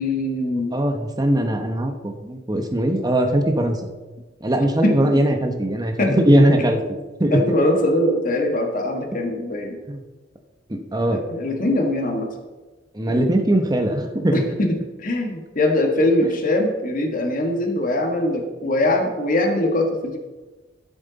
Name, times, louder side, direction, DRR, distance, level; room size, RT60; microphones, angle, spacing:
voice 1, 0.0-0.8 4.8-4.9 6.0-6.2 7.3-9.8 11.1-12.3 13.1-13.3 14.3-20.2, left 1 dB, 45° left, 2 dB, 1.7 m, -22 dB
voice 2, 0.7-3.8 4.4-7.4 9.9-10.0 10.7-11.2 12.9-14.4, right 1 dB, 20° right, 4 dB, 1.1 m, -20 dB
14.0 x 7.8 x 4.1 m, 1.2 s
head